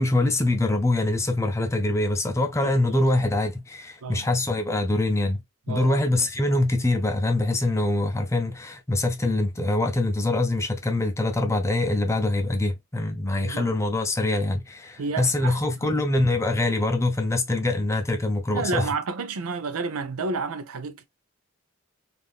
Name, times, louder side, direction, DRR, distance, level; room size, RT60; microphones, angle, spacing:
voice 1, 0.0-18.9, left 2 dB, 15° left, 0.4 m, -24 dB
voice 2, 2.6-3.1 4.0-4.3 5.7-6.0 13.4-13.7 15.0-15.6 15.8-16.0 18.5-21.1, right 4 dB, 90° right, 0.6 m, -31 dB
3.5 x 2.5 x 2.3 m
head